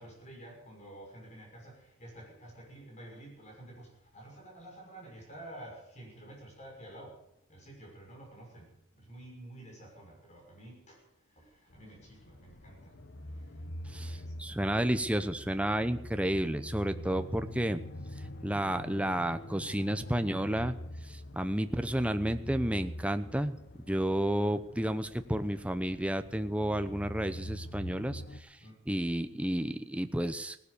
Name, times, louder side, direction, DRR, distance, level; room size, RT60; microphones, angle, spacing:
voice 1, 0.0-7.2 7.5-11.0 11.4-13.0 13.8-14.8 28.6-28.8, right 1 dB, 35° left, 0 dB, 6.2 m, -50 dB
sound 1, 11.7-28.4, left 1 dB, 55° left, 1.1 m, -44 dB
voice 2, 13.9-17.8 18.4-20.7 21.1-23.6 23.9-28.5 28.9-30.6, right 1 dB, 5° right, 9 dB, 0.8 m, -31 dB
17.5 x 11.5 x 6.8 m, 0.74 s
head